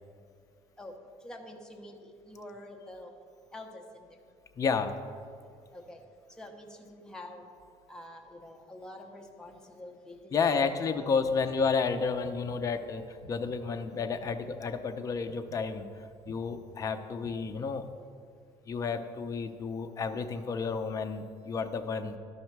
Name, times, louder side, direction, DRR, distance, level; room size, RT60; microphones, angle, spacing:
voice 1, 1.2-3.1 3.5-4.1 5.7-6.0 6.4-7.4 7.9-11.3, left 1 dB, 5° left, 2 dB, 0.8 m, -46 dB
voice 2, 4.6-5.0 10.3-17.9 18.7-22.2, left 5 dB, 30° left, 7 dB, 0.5 m, -31 dB
sound 1, 11.2-17.9, right 2 dB, 70° right, 0.9 m, -54 dB
11.5 x 5.4 x 4.6 m, 2.3 s
cardioid pair, 140°, 12 cm